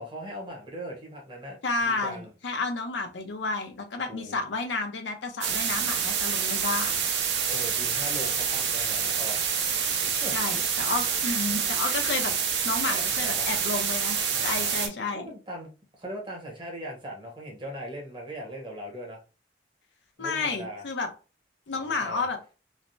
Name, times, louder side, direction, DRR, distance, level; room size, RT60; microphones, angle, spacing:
voice 1, 0.0-2.3 4.1-4.5 7.5-9.5 10.0-10.7 12.9-13.5 14.3-15.7 16.0-19.2 20.2-20.8 21.8-22.3, equal, 25° right, 0.9 m, -40 dB
voice 2, 1.6-6.9 10.3-12.3 12.6-15.3 20.2-21.1 21.7-22.4, left 3 dB, 85° left, 0.6 m, -31 dB
sound 1, 5.4-14.9, right 7 dB, 85° right, 0.6 m, -27 dB
3.2 x 2.0 x 2.6 m
head